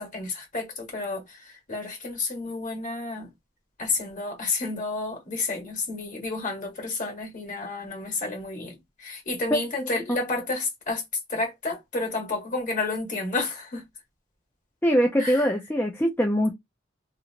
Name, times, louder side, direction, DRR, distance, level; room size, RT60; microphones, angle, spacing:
voice 1, 0.0-3.3 3.8-11.0 11.3-13.9 15.2-15.5, left 3 dB, 45° left, 1.5 m, -31 dB
voice 2, 14.8-16.5, equal, 10° left, 0.4 m, -22 dB
2.9 x 2.4 x 2.8 m
head